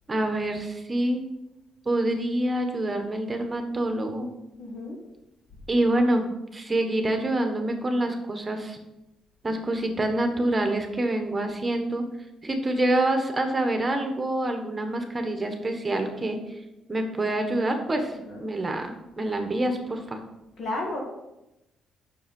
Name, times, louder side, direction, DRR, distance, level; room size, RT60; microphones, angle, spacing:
voice 1, 0.1-1.2 1.8-4.3 5.7-8.8 9.4-12.0 12.4-16.4 16.9-18.9 19.2-20.2, right 1 dB, 25° right, 5 dB, 1.3 m, -26 dB
voice 2, 4.6-5.0 18.1-18.5 20.6-21.0, left 2 dB, 65° left, -1 dB, 1.8 m, -33 dB
6.8 x 6.2 x 5.3 m, 0.94 s
cardioid pair, 90°, 0 cm